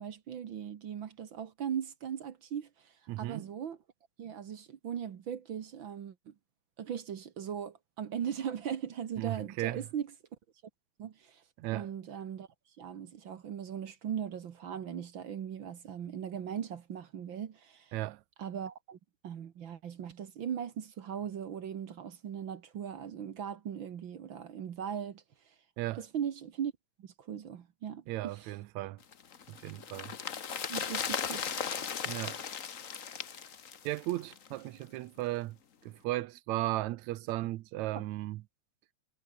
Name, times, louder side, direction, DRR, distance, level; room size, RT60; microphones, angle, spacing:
voice 1, 0.0-3.8 4.2-6.3 6.8-10.1 11.0-11.4 11.7-12.5 12.8-17.9 18.4-19.0 19.2-25.2 26.0-26.7 27.0-28.5 30.7-31.5 37.9-38.0, right 8 dB, 55° right, 1.5 m, -39 dB
voice 2, 3.1-3.5 9.2-9.9 11.6-11.9 17.9-18.2 25.8-26.1 28.1-29.0 29.5-30.2 32.0-32.4 33.8-35.6 35.8-38.4, right 17 dB, 75° right, 1.9 m, -36 dB
sound 1, 29.1-34.5 34.8-34.9, left 7 dB, 90° left, 0.7 m, -37 dB
omnidirectional pair, 3.5 m